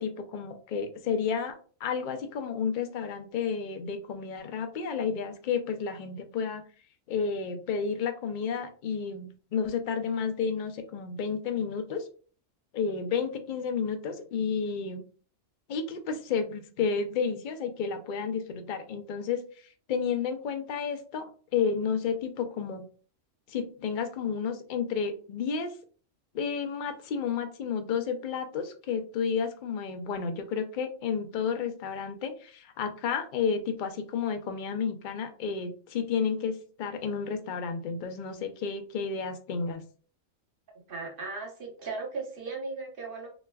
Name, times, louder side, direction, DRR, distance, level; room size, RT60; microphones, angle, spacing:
voice 1, 0.0-1.5 1.8-6.6 7.1-12.1 12.7-15.0 15.7-22.8 23.5-25.7 26.3-39.8, left 6 dB, 65° left, 7 dB, 0.5 m, -31 dB
voice 2, 40.9-43.3, right 3 dB, 45° right, 0 dB, 1.0 m, -37 dB
3.2 x 3.1 x 2.2 m, 0.40 s
omnidirectional pair, 1.4 m